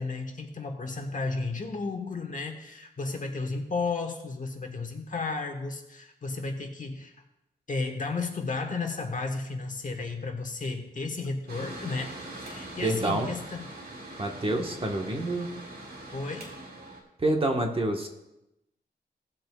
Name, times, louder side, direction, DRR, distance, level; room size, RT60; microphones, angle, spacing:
voice 1, 0.0-7.1 7.7-12.1 12.4-13.7 16.1-16.5, left 3 dB, 50° left, 3 dB, 1.3 m, -33 dB
Mechanical fan, 11.5-17.0, right 1 dB, 60° right, 2.1 m, -42 dB
voice 2, 12.8-13.3 14.2-15.5 17.2-18.1, right 1 dB, 30° right, 3 dB, 1.2 m, -27 dB
17.5 x 7.7 x 2.3 m, 0.90 s
wide cardioid pair, 105°, 18 cm